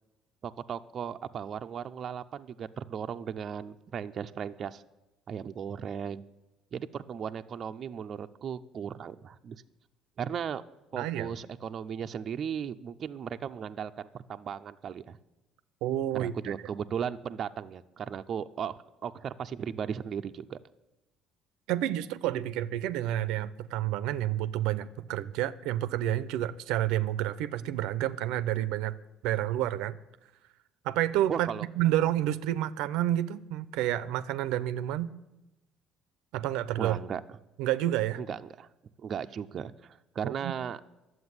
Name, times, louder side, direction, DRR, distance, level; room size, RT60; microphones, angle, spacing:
voice 1, 0.4-4.8 5.3-6.2 6.7-9.6 10.2-10.6 10.9-15.2 16.1-20.6 31.3-31.7 36.8-37.2 38.2-38.7 39.0-40.8, right 7 dB, 40° right, 8 dB, 0.5 m, -36 dB
voice 2, 11.0-11.4 15.8-16.5 21.7-28.9 29.2-30.0 30.8-31.5 31.8-35.1 36.3-37.0 37.6-38.2 40.2-40.6, right 13 dB, 85° right, 15 dB, 0.6 m, -29 dB
11.5 x 7.9 x 9.5 m, 1.0 s
cardioid pair, 145°, 0 cm